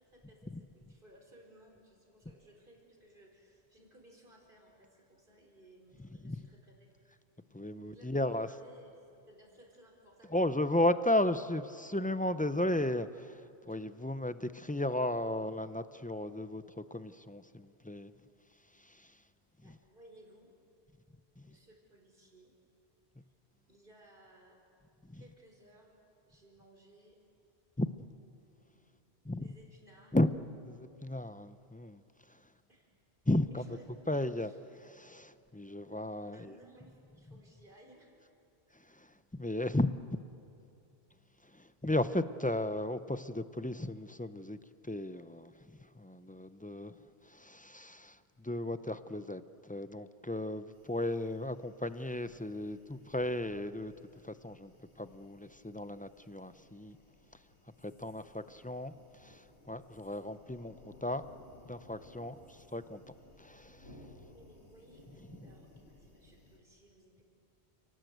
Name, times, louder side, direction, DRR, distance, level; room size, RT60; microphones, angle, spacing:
voice 1, 0.0-6.9 7.8-9.0 9.3-10.7 19.6-20.5 21.5-22.5 23.7-24.6 25.2-25.9 26.2-27.2 28.7-29.0 29.3-30.2 32.7-32.9 33.5-34.6 36.3-38.2 64.1-65.7 66.0-67.2, right 1 dB, 50° right, 0 dB, 4.9 m, -60 dB
voice 2, 7.5-8.5 10.3-13.4 13.7-16.6 16.9-18.1 25.1-25.2 27.8-27.9 29.3-29.4 30.1-30.3 30.6-32.0 33.3-33.7 34.1-36.5 39.3-40.2 41.8-44.6 44.8-45.5 46.0-46.9 47.3-53.9 54.2-54.7 55.0-57.0 57.8-58.9 59.2-59.4 59.7-60.7 61.0-61.2 61.7-62.4 62.7-63.0 63.4-63.9, left 1 dB, 10° left, 11 dB, 0.4 m, -34 dB
sound 1, 50.7-66.6, left 1 dB, 90° left, 3.0 m, -60 dB
30.0 x 18.5 x 8.0 m, 2.7 s
omnidirectional pair, 1.1 m